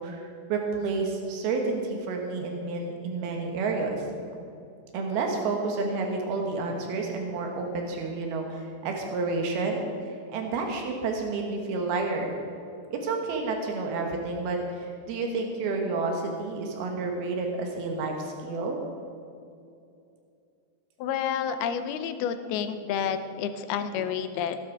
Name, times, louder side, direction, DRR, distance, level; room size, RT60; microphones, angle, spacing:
voice 1, 0.0-4.0 4.9-9.9 10.3-12.3 12.9-18.8, right 3 dB, 80° right, 2 dB, 3.3 m, -30 dB
voice 2, 21.0-24.6, left 8 dB, 85° left, 10 dB, 2.7 m, -29 dB
16.0 x 12.0 x 4.6 m, 2.5 s
omnidirectional pair, 4.4 m